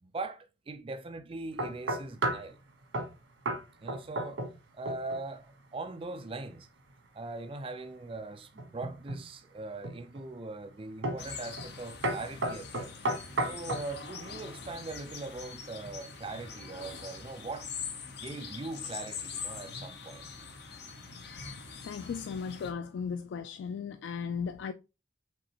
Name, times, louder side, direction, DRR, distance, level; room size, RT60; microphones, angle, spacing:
voice 1, 0.0-2.6 3.8-4.4 4.7-6.7 7.1-13.0 13.4-17.7 18.2-20.3, right 3 dB, 30° right, 0.4 m, -41 dB
sound 1, 1.6-2.5 2.9-3.1 3.5-3.6 3.9-4.6 4.9-5.2 8.6-9.2 9.8-10.2 11.0-11.3 11.6-11.8 12.0-13.9, right 1 dB, 90° right, 1.2 m, -32 dB
sound 2, 11.2-22.7, left 5 dB, 60° left, 0.7 m, -43 dB
voice 2, 21.8-24.7, left 6 dB, 80° left, 0.3 m, -36 dB
5.2 x 3.2 x 2.9 m
head